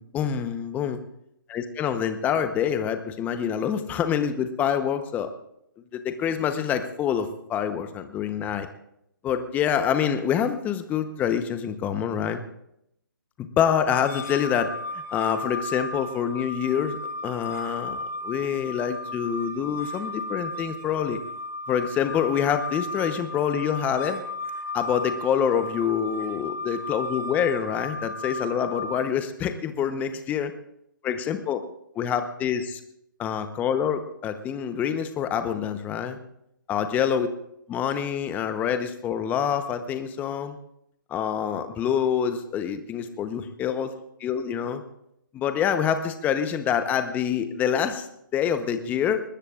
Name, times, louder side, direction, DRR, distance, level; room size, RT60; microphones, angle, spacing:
voice 1, 0.0-1.0 1.5-5.3 5.9-8.7 9.2-12.4 13.4-14.7 15.1-21.2 21.7-24.2 24.7-30.5 31.0-31.6 31.9-32.8 33.2-36.2 36.7-37.3 37.7-40.6 41.1-43.9 44.2-44.8 45.3-48.1 48.3-49.2, left 8 dB, 15° left, 9 dB, 0.9 m, -26 dB
sound 1, 13.9-29.0, left 2 dB, 45° left, 5.5 m, -35 dB
23.0 x 20.0 x 2.5 m, 0.79 s
hypercardioid pair, 145°, 12 cm